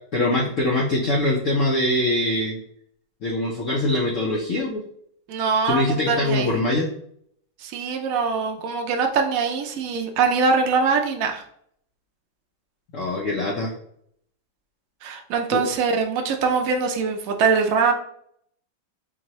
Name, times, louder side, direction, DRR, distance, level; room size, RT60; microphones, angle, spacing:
voice 1, 0.1-2.6 3.2-4.8 5.7-6.9 12.9-13.7 15.5-15.6, left 1 dB, 75° left, -1 dB, 0.7 m, -23 dB
voice 2, 5.3-6.5 7.6-11.4 15.0-17.9, right 5 dB, 80° right, 4 dB, 0.7 m, -23 dB
4.3 x 2.7 x 3.0 m, 0.67 s
omnidirectional pair, 2.1 m